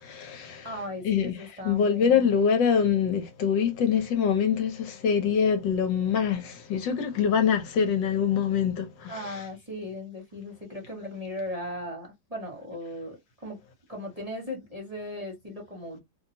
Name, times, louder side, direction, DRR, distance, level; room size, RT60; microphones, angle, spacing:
voice 1, 0.1-0.7 1.0-1.4 1.6-9.4, left 7 dB, 75° left, 1.5 m, -24 dB
voice 2, 0.6-2.3 7.7-7.9 9.1-13.6 13.9-16.0, left 1 dB, 25° right, 1.1 m, -37 dB
2.9 x 2.9 x 2.6 m
omnidirectional pair, 2.0 m